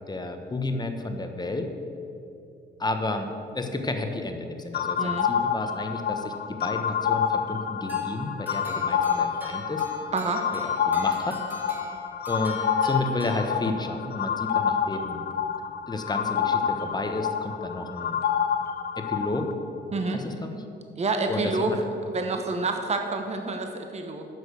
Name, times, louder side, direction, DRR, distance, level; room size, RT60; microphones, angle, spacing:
voice 1, 0.0-1.7 2.8-3.3 3.5-9.8 10.5-11.6 12.3-15.2 15.9-18.2 19.0-19.5 20.1-20.6 21.3-21.8, left 2 dB, 20° left, 6 dB, 1.1 m, -31 dB
sound 1, 4.7-19.5, left 7 dB, 55° left, 0.6 m, -28 dB
voice 2, 5.0-5.3 10.1-10.4 19.9-20.2 21.0-21.7 22.1-24.3, right 3 dB, 35° right, 5 dB, 1.0 m, -28 dB
sound 2, 7.9-14.0, equal, 10° right, 1.7 m, -43 dB
9.8 x 6.3 x 6.8 m, 2.7 s
cardioid pair, 90°, 20 cm